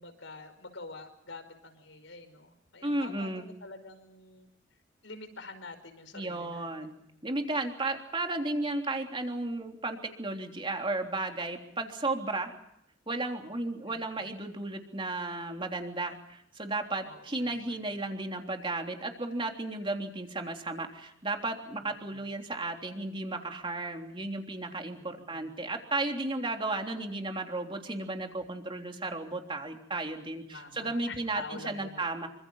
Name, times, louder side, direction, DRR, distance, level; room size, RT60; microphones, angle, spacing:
voice 1, 0.0-4.5 5.0-7.0 13.9-14.3 17.0-18.0 21.8-22.3 24.9-25.7 30.5-32.3, left 3 dB, 80° left, 10 dB, 5.2 m, -47 dB
voice 2, 2.8-3.5 6.1-6.9 7.2-12.5 13.1-32.3, right 2 dB, 25° right, 3 dB, 3.4 m, -34 dB
28.0 x 25.5 x 5.7 m, 0.80 s
head